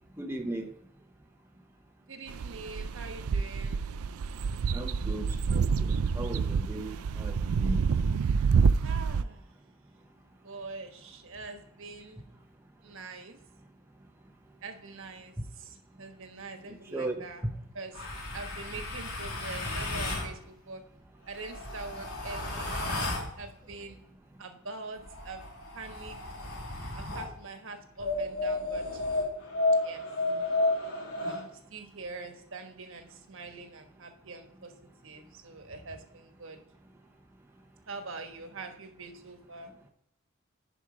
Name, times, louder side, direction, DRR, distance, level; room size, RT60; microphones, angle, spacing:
voice 1, 0.2-0.7 4.7-6.9 7.2-7.3 7.6-7.8 16.9-17.2, right 2 dB, 10° right, 2 dB, 0.7 m, -36 dB
voice 2, 2.1-3.9 8.8-9.4 10.4-12.3 12.8-13.4 14.6-17.4 17.7-18.0 18.3-20.8 21.2-22.9 23.3-24.0 24.4-25.4 25.7-26.2 26.9-29.0 29.8-30.0 31.2-34.7 35.0-36.6 37.9-39.9, right 3 dB, 60° right, 6 dB, 1.3 m, -44 dB
sound 1, 2.3-9.2, right 5 dB, 75° right, 0.4 m, -28 dB
sound 2, 17.9-20.3 21.3-23.3 25.0-27.3 28.0-31.4, left 2 dB, 80° left, 2.5 m, -32 dB
10.5 x 5.1 x 4.9 m, 0.78 s
head